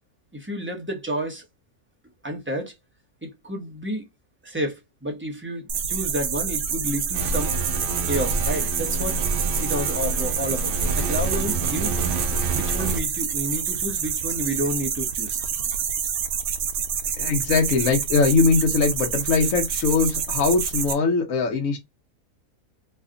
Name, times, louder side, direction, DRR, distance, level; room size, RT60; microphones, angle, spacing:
voice 1, 0.3-1.4 2.2-2.7 3.2-4.0 4.4-7.6 8.1-9.2 9.6-12.2 12.5-15.4, equal, 10° right, 0.8 m, -30 dB
sound 1, 5.7-20.9, right 7 dB, 80° right, 1.1 m, -27 dB
sound 2, 7.1-13.0, right 3 dB, 50° right, 0.7 m, -28 dB
voice 2, 17.2-21.8, left 4 dB, 70° left, 1.2 m, -21 dB
3.3 x 2.4 x 3.7 m
omnidirectional pair, 1.5 m